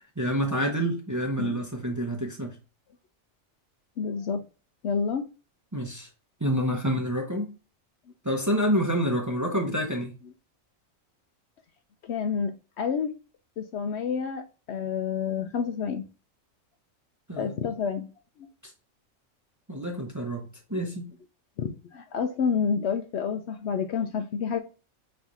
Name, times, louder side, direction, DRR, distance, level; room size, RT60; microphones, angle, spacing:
voice 1, 0.0-2.6 5.7-6.1 6.4-7.5 8.2-10.2 17.3-17.6 19.7-21.1, equal, 15° right, 0.7 m, -28 dB
voice 2, 4.0-4.4 4.8-5.3 12.0-13.1 13.6-16.1 17.4-18.1 18.4-18.5 20.7-20.9 21.6-24.6, left 6 dB, 65° left, 0.7 m, -29 dB
5.9 x 3.2 x 2.6 m
omnidirectional pair, 1.4 m